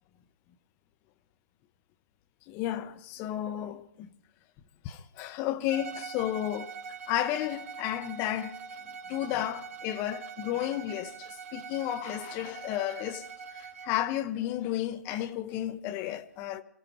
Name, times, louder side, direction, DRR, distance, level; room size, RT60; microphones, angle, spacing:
voice 1, 2.5-4.1 4.8-6.7 7.1-8.6 9.1-13.3 13.5-16.6, left 12 dB, 25° left, 1.0 m, -32 dB
Bowed string instrument, 5.7-14.0, right 6 dB, 50° right, 2.1 m, -43 dB
28.5 x 16.0 x 3.2 m
hypercardioid pair, 145°, 10 cm